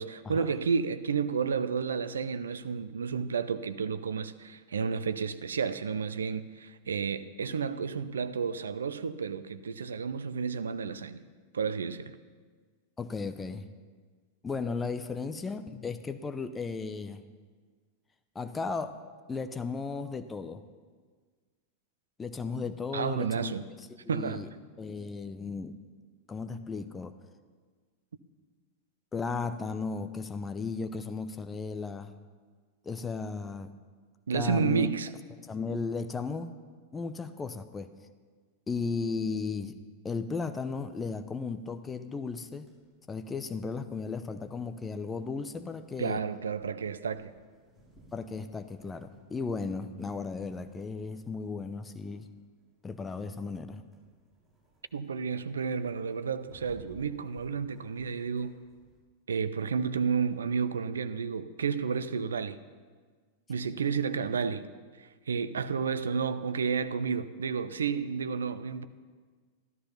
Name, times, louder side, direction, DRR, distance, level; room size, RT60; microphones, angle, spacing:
voice 1, 0.0-11.2 11.5-12.2 22.9-23.7 24.1-24.5 34.3-35.1 46.0-47.3 54.9-58.6 59.3-62.6 63.5-64.7 65.0-68.9, right 6 dB, 70° right, 0.6 m, -31 dB
voice 2, 13.0-13.7 14.4-17.2 18.3-19.0 19.3-20.6 22.2-23.5 24.0-24.5 24.8-25.8 26.3-27.1 29.1-32.1 32.8-33.7 34.3-34.9 35.4-36.5 36.9-37.9 38.7-39.8 40.0-42.7 43.1-46.2 48.1-52.3 52.8-53.8, left 4 dB, 15° left, 0.8 m, -35 dB
sound 1, 42.7-59.0, right 1 dB, ahead, 5.9 m, -61 dB
14.0 x 13.0 x 5.7 m
figure-of-eight pair, 90°, 0 cm